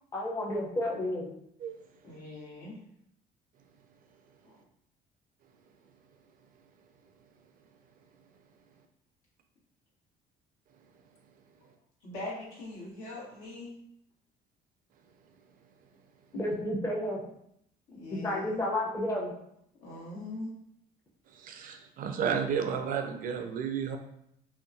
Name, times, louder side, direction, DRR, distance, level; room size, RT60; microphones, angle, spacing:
voice 1, 0.1-1.3 16.3-17.2 18.2-19.3, left 1 dB, 15° left, -2 dB, 0.6 m, -31 dB
voice 2, 2.0-2.7 4.4-4.6 12.0-13.7 17.9-18.6 19.8-20.5, left 2 dB, 80° left, -7 dB, 1.4 m, -41 dB
voice 3, 21.3-24.0, right 7 dB, 55° right, 5 dB, 0.4 m, -32 dB
2.8 x 2.2 x 2.6 m, 0.73 s
cardioid pair, 110°, 17 cm